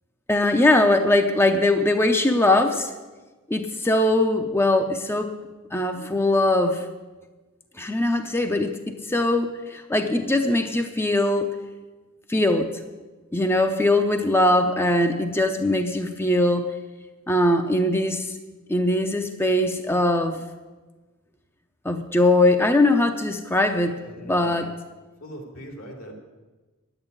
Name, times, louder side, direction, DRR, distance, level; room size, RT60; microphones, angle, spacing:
voice 1, 0.3-2.9 3.5-5.3 5.7-6.9 7.8-11.5 12.3-12.7 13.3-16.7 17.3-18.3 18.7-20.4 21.8-24.7, left 1 dB, 10° left, 5 dB, 0.7 m, -21 dB
voice 2, 23.8-24.7 25.2-26.1, equal, 80° left, 2 dB, 3.1 m, -41 dB
11.0 x 8.9 x 9.6 m, 1.2 s
head